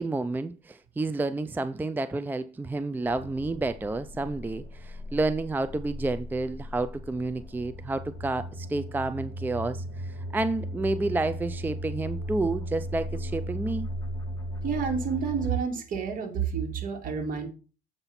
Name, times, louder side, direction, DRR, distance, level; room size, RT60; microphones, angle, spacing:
voice 1, 0.0-13.9, right 2 dB, 10° right, 0.4 m, -30 dB
sound 1, 3.0-15.6, equal, 15° left, 2.5 m, -37 dB
voice 2, 14.6-17.5, right 6 dB, 55° right, 2.5 m, -29 dB
7.8 x 5.8 x 4.2 m
cardioid pair, 110°, 17 cm